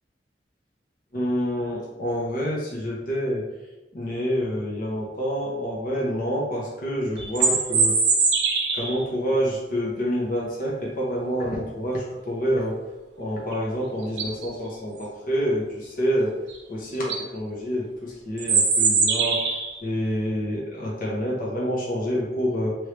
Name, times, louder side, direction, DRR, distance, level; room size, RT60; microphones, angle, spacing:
voice 1, 1.1-3.4 3.9-8.0 8.7-12.8 13.2-16.4 16.7-19.5 19.8-22.8, equal, 50° left, -4 dB, 0.9 m, -27 dB
sound 1, 7.2-9.0 13.5-13.6 14.0-14.5 16.5-16.6 16.9-17.2 18.4-19.8, right 4 dB, 70° right, 0.7 m, -22 dB
3.1 x 2.7 x 3.2 m, 1.0 s
head